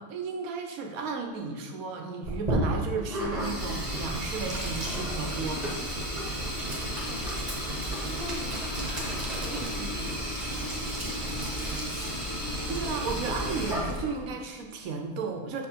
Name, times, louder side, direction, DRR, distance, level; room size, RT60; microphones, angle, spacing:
voice 1, 0.0-5.9 9.5-10.0 12.7-15.7, right 4 dB, 75° right, 3 dB, 1.2 m, -34 dB
sound 1, 0.9-13.7, left 2 dB, 30° left, 0.7 m, -44 dB
Sink (filling or washing), 2.2-14.3, right 1 dB, 30° right, 1.1 m, -34 dB
sound 2, 3.2-14.0, right 1 dB, 55° right, 0.3 m, -37 dB
voice 2, 6.6-7.4 8.0-11.5 11.8-12.0, left 3 dB, 70° left, -1 dB, 0.5 m, -46 dB
6.0 x 3.7 x 4.4 m, 1.5 s
omnidirectional pair, 1.5 m